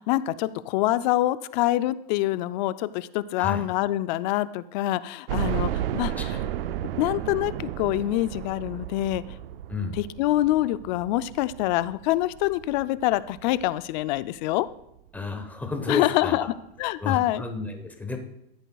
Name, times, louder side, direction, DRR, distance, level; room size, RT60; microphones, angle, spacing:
voice 1, 0.0-6.4 7.0-9.2 9.9-14.7 15.9-16.4 16.8-17.4, left 15 dB, 50° left, 15 dB, 0.4 m, -25 dB
sound 1, 5.3-14.2 14.7-14.8 15.1-15.2 16.4-16.5 16.8-16.9, right 12 dB, 80° right, 0.5 m, -33 dB
voice 2, 6.1-6.4 9.7-10.0 15.1-16.5 17.0-18.2, left 3 dB, 5° left, 5 dB, 1.0 m, -32 dB
14.0 x 8.0 x 2.3 m, 0.83 s
supercardioid pair, 135°, 29 cm